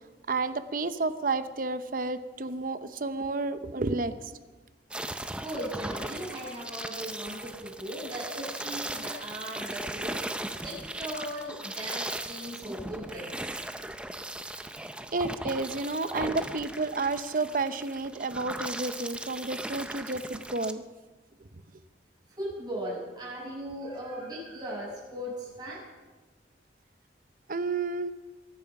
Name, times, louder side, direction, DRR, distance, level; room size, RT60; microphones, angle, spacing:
voice 1, 0.3-4.3 15.1-20.8 27.5-28.1, right 3 dB, 45° right, 11 dB, 0.7 m, -31 dB
sound 1, 4.9-20.7, right 1 dB, 5° right, 0.5 m, -38 dB
voice 2, 5.4-13.3 22.3-25.8, equal, 20° right, -4 dB, 6.5 m, -38 dB
22.5 x 9.0 x 5.9 m, 1.2 s
head